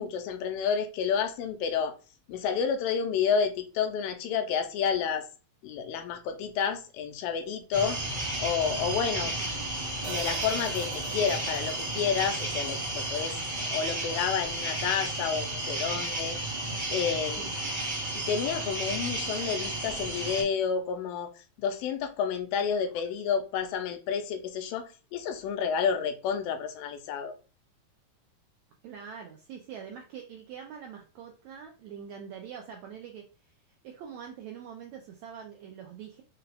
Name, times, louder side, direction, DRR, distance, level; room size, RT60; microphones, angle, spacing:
voice 1, 0.0-2.0 2.3-5.3 5.6-9.3 10.0-16.4 16.9-17.5 18.1-21.3 21.6-27.3, left 7 dB, 85° left, 2.5 m, -30 dB
sound 1, 7.7-20.4, right 2 dB, 30° right, 0.7 m, -33 dB
voice 2, 9.2-9.6 17.4-17.6 22.6-22.8 28.8-33.5 33.8-36.2, right 7 dB, 90° right, 1.6 m, -44 dB
Hi-hat, 10.0-14.2, right 4 dB, 70° right, 2.1 m, -46 dB
5.8 x 2.3 x 3.3 m
omnidirectional pair, 4.0 m